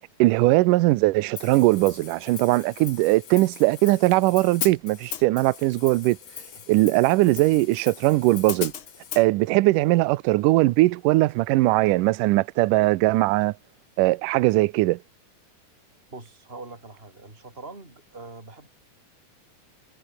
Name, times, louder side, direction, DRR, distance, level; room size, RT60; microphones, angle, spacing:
voice 1, 0.2-6.2 6.7-8.7 9.2-13.5 14.0-15.0, right 19 dB, 80° right, 2.0 m, -20 dB
Hi-hat, 1.4-9.3, left 9 dB, 50° left, 1.5 m, -38 dB
voice 2, 16.1-18.7, right 3 dB, 15° right, 5.8 m, -43 dB
omnidirectional pair, 4.4 m